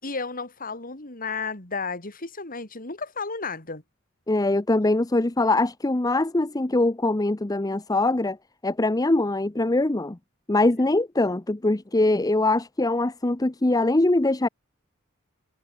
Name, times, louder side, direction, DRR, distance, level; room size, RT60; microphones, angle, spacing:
voice 1, 0.0-3.8, left 4 dB, 45° left, 3.9 m, -33 dB
voice 2, 4.3-8.4 8.6-10.2 10.5-14.5, left 2 dB, 20° left, 0.7 m, -22 dB
head